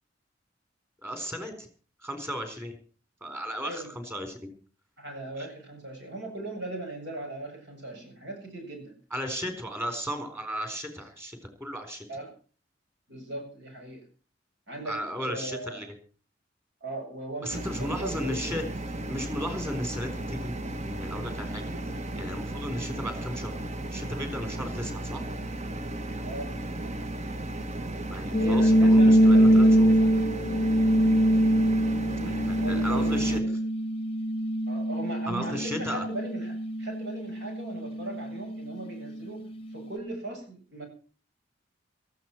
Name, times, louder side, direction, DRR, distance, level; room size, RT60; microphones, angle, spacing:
voice 1, 1.0-1.7 2.0-2.7 3.2-4.5 5.4-5.5 9.1-12.1 14.9-15.9 17.4-18.6 19.1-20.6 20.8-21.6 22.1-23.6 23.9-25.2 28.1-29.9 32.2-33.4 35.3-36.0, equal, 15° right, 7 dB, 4.2 m, -35 dB
voice 2, 5.0-9.0 12.1-12.3 13.1-14.0 14.7-15.0 15.2-15.8 16.8-18.6 26.2-26.6 28.4-30.1 32.0-33.5 34.7-39.4 39.7-40.8, right 2 dB, 70° right, 3 dB, 7.7 m, -38 dB
sound 1, 17.5-33.4, right 1 dB, 40° right, 1.0 m, -35 dB
sound 2, 28.3-39.2, equal, 30° left, 0.8 m, -23 dB
18.5 x 14.5 x 4.6 m, 0.40 s
head